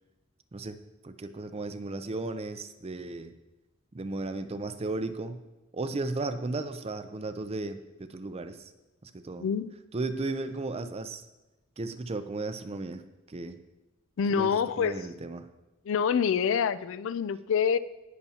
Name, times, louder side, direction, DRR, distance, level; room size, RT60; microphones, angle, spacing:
voice 1, 1.0-3.3 3.9-5.4 5.7-8.7 9.0-9.5 9.9-11.2 11.8-13.0 13.3-13.6 14.3-15.5, right 2 dB, 30° right, 0.5 m, -35 dB
voice 2, 9.4-9.7 14.2-15.0 15.9-17.8, left 7 dB, 65° left, 0.3 m, -26 dB
18.0 x 6.9 x 2.8 m
head